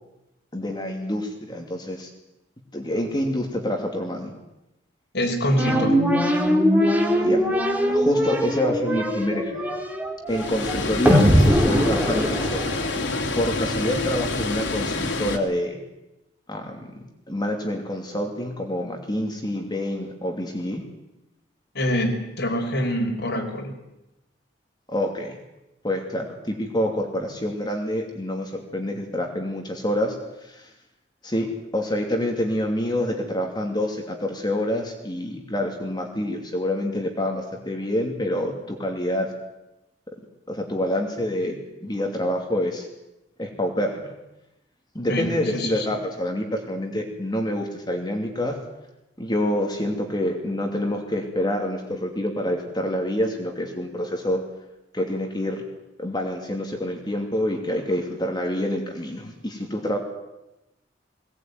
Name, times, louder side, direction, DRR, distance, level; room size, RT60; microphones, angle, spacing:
voice 1, 0.5-2.1 2.7-4.3 7.2-7.4 7.9-9.6 10.3-12.7 13.3-15.8 16.5-16.9 17.3-20.8 24.9-25.4 25.8-30.2 30.4-30.7 31.2-39.3 40.5-41.6 41.8-42.9 43.4-44.1 44.9-48.6 49.2-54.4 54.9-55.6 56.0-60.0, left 1 dB, 25° left, 2 dB, 2.8 m, -27 dB
voice 2, 5.1-6.0 21.7-23.7 45.1-45.9, equal, 65° left, 2 dB, 5.1 m, -25 dB
sound 1, 5.6-13.1, equal, 10° right, 3.1 m, -21 dB
Water, 10.3-15.4, left 2 dB, 85° left, 2.8 m, -27 dB
21.0 x 19.0 x 9.5 m, 0.94 s
head